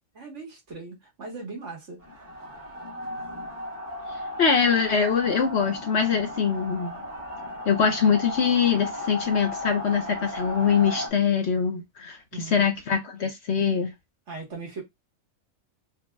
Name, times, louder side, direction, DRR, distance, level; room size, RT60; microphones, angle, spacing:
voice 1, 0.2-2.0 12.3-12.7 14.3-14.8, right 4 dB, 60° right, 1.8 m, -39 dB
sound 1, 2.0-11.1, left 1 dB, 35° right, 1.7 m, -35 dB
voice 2, 4.4-7.0 7.7-12.2 12.4-13.9, left 6 dB, 60° left, 0.9 m, -23 dB
4.5 x 2.7 x 2.3 m
omnidirectional pair, 1.4 m